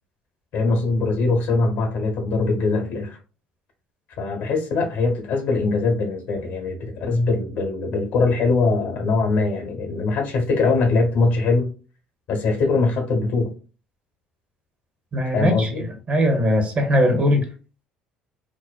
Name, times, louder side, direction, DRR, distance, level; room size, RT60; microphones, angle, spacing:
voice 1, 0.5-3.2 4.2-11.7 12.3-13.5 15.3-15.9, left 3 dB, 65° left, 0.8 m, -22 dB
voice 2, 15.1-15.7 16.1-17.4, equal, 40° right, 0.9 m, -19 dB
2.6 x 2.1 x 2.2 m
hypercardioid pair, 70°, 3 cm